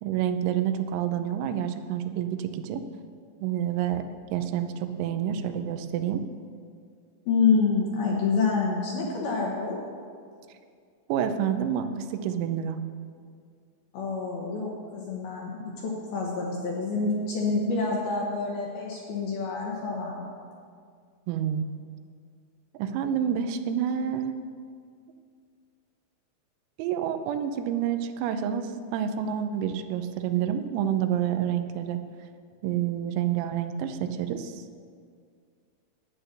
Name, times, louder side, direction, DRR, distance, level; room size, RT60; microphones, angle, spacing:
voice 1, 0.0-2.8 3.4-4.1 4.3-6.2 11.1-12.8 21.3-21.7 22.8-24.3 26.8-32.0 32.6-34.7, right 9 dB, 90° right, 9 dB, 3.5 m, -28 dB
voice 2, 7.3-9.8 13.9-20.3, left 4 dB, 65° left, -3 dB, 2.6 m, -27 dB
11.5 x 9.0 x 6.6 m, 2.1 s
omnidirectional pair, 5.9 m